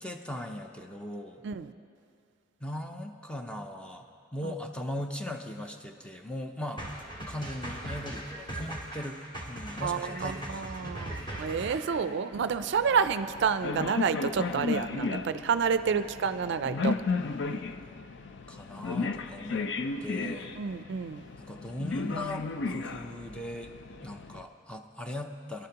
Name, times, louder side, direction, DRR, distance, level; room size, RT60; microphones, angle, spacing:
voice 1, 0.0-1.4 2.6-6.8 7.3-9.2 9.5-11.0 11.9-12.2 15.9-16.1 17.4-17.9 18.5-19.7 20.0-20.5 21.4-23.7 24.0-25.7, left 1 dB, 5° left, 4 dB, 0.6 m, -39 dB
sound 1, 6.8-12.0, right 1 dB, 25° left, 2.1 m, -39 dB
voice 2, 9.8-17.0 20.2-21.2, right 6 dB, 60° right, 11 dB, 0.4 m, -29 dB
sound 2, 12.3-24.4, left 4 dB, 65° left, 0.5 m, -35 dB
22.0 x 12.0 x 2.9 m, 2.4 s
head